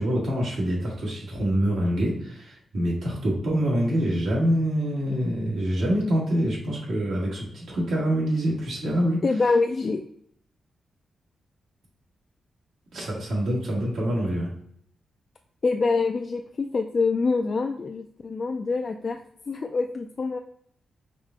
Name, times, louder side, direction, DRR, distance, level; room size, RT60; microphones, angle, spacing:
voice 1, 0.0-9.2 12.9-14.5, equal, 85° right, -4 dB, 1.9 m, -25 dB
voice 2, 9.2-10.0 15.6-19.2 19.5-20.4, left 4 dB, 50° left, 4 dB, 0.3 m, -25 dB
4.8 x 2.7 x 3.7 m, 0.67 s
cardioid pair, 70°, 0 cm